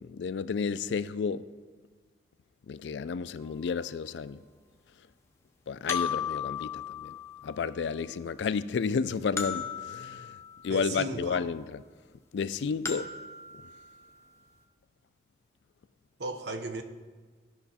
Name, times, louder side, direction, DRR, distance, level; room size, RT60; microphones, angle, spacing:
voice 1, 0.0-1.4 2.7-4.4 5.7-7.2 7.4-10.4 10.6-11.8 12.3-13.1, left 5 dB, 85° left, 0.4 m, -31 dB
sound 1, 3.5-3.6 5.9-7.8 9.4-11.0 12.9-14.3, left 7 dB, 15° left, 0.6 m, -36 dB
voice 2, 10.7-11.4 16.2-16.8, right 2 dB, 75° right, 0.8 m, -35 dB
14.5 x 5.6 x 4.2 m
head